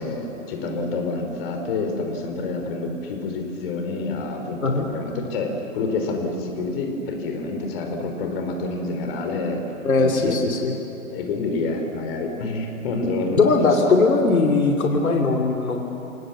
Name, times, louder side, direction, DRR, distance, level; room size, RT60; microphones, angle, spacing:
voice 1, 0.0-9.6 9.9-10.4 11.1-13.4 13.8-13.9, left 3 dB, 45° left, 3 dB, 4.2 m, -28 dB
voice 2, 9.8-10.7 13.3-15.8, left 3 dB, 90° left, 2 dB, 2.8 m, -19 dB
28.0 x 19.5 x 7.2 m, 3.0 s
hypercardioid pair, 140°, 41 cm